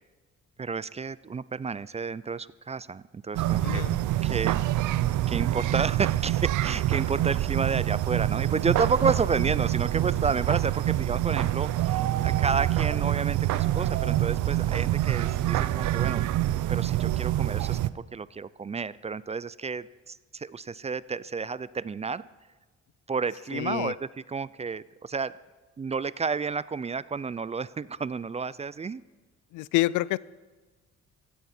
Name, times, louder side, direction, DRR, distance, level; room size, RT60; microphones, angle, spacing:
voice 1, 0.6-3.8 4.2-4.6 5.3-16.2 16.7-22.3 23.1-25.4 25.8-29.0, right 5 dB, 20° right, 19 dB, 0.4 m, -31 dB
sound 1, 3.3-17.9, right 14 dB, 75° right, 0.6 m, -26 dB
voice 2, 3.6-4.0 23.5-23.9 29.5-30.2, left 17 dB, 85° left, 21 dB, 0.5 m, -27 dB
16.0 x 15.0 x 4.3 m, 1.3 s
cardioid pair, 90°, 30 cm